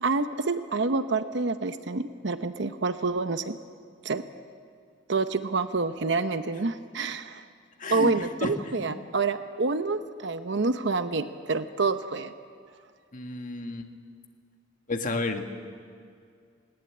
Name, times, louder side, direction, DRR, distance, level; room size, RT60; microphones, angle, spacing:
voice 1, 0.0-3.6 4.0-4.2 5.1-7.4 7.9-12.3, right 3 dB, 70° right, 10 dB, 0.8 m, -28 dB
voice 2, 7.8-8.1 8.4-8.5 8.8-9.0 13.1-13.9 14.9-15.4, left 2 dB, 45° left, 4 dB, 1.8 m, -31 dB
19.5 x 18.0 x 9.9 m, 2.2 s
head